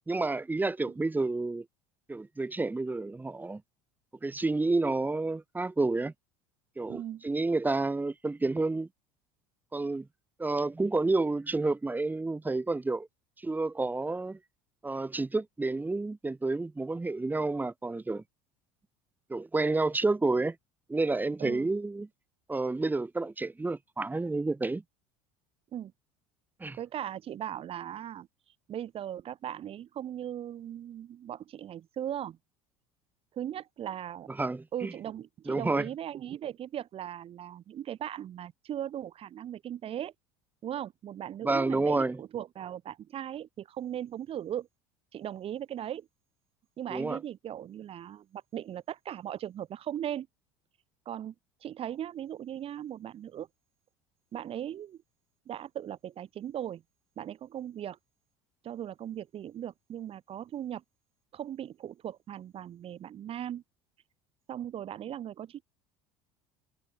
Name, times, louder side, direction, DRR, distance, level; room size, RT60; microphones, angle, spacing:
voice 1, 0.1-1.7 2.1-3.6 4.2-6.1 6.8-8.9 9.7-10.1 10.4-13.1 13.4-14.4 14.8-18.2 19.3-20.6 20.9-22.1 22.5-24.8 26.6-26.8 34.4-34.9 35.5-35.9 41.4-42.2 46.9-47.2, right 3 dB, 15° right, 2.4 m, -30 dB
voice 2, 6.9-7.2 21.4-21.7 25.7-25.9 26.8-28.3 28.7-32.4 33.3-34.3 34.7-40.1 40.6-44.7 45.1-46.1 46.8-50.3 51.0-51.3 51.6-53.5 54.3-55.0 55.5-56.8 57.2-58.0 58.6-60.8 61.3-63.6 64.5-65.6, right 10 dB, 45° right, 3.2 m, -38 dB
supercardioid pair, 95°, 14 cm